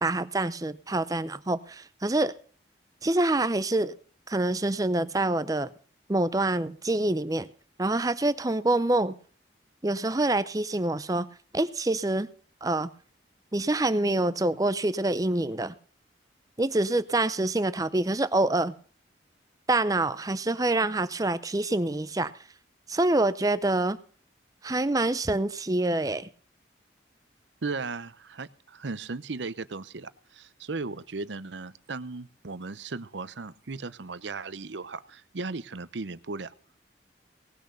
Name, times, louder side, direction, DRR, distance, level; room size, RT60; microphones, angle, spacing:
voice 1, 0.0-2.3 3.0-3.9 4.3-5.7 6.1-7.5 7.8-9.1 9.8-11.3 11.5-12.3 12.6-12.9 13.5-15.7 16.6-18.7 19.7-22.3 22.9-24.0 24.6-26.3, right 2 dB, 20° right, 0.6 m, -26 dB
voice 2, 27.6-36.5, right 3 dB, 75° right, 0.8 m, -36 dB
18.5 x 6.4 x 6.8 m
head